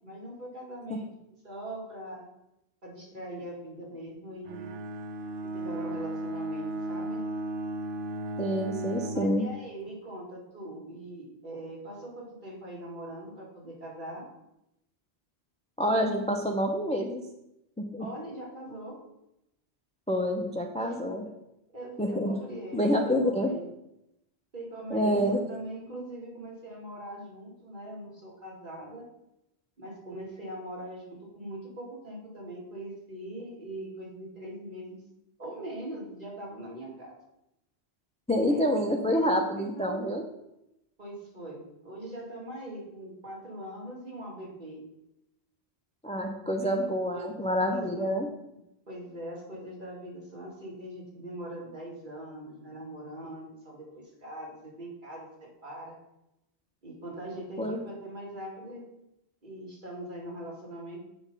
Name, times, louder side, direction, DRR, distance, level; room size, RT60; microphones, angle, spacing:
voice 1, 0.0-1.1 1.4-2.2 2.8-4.7 5.4-7.2 9.1-14.3 18.0-19.0 20.8-21.0 21.7-23.6 24.5-29.1 29.8-35.0 35.4-37.1 38.3-38.8 39.1-40.1 41.0-44.8 46.4-46.9 47.1-47.4 47.7-48.1 48.9-56.0 56.8-58.8 59.4-61.1, right 1 dB, 45° right, -3 dB, 2.3 m, -41 dB
Bowed string instrument, 4.5-9.4, right 1 dB, 70° right, 0.9 m, -35 dB
voice 2, 8.4-9.5 15.8-17.2 17.8-18.1 20.1-21.2 22.0-22.3 22.7-23.5 24.9-25.4 38.3-40.2 46.0-48.3 57.6-57.8, equal, 10° left, 3 dB, 0.5 m, -27 dB
8.1 x 5.2 x 5.3 m, 0.86 s
omnidirectional pair, 1.1 m